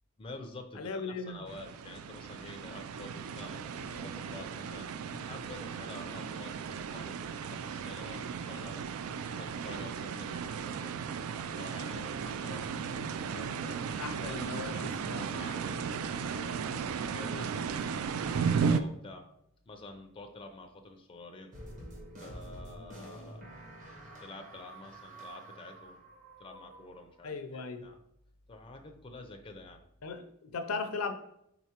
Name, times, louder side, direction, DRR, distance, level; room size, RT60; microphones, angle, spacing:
voice 1, 0.2-4.9 5.3-8.9 9.2-11.0 11.6-12.6 13.3-17.5 18.2-19.2 19.7-21.5 22.2-23.6 24.2-26.0 26.4-28.0 28.5-29.8, left 2 dB, 25° left, 0.4 m, -49 dB
voice 2, 0.8-1.4 14.0-14.7 15.1-15.2 27.2-27.9 30.0-31.1, left 4 dB, 75° left, 0.5 m, -37 dB
sound 1, 1.5-18.8, right 6 dB, 65° right, 0.3 m, -35 dB
sound 2, 21.5-27.2, right 1 dB, 35° right, 1.0 m, -48 dB
4.6 x 3.9 x 2.8 m
head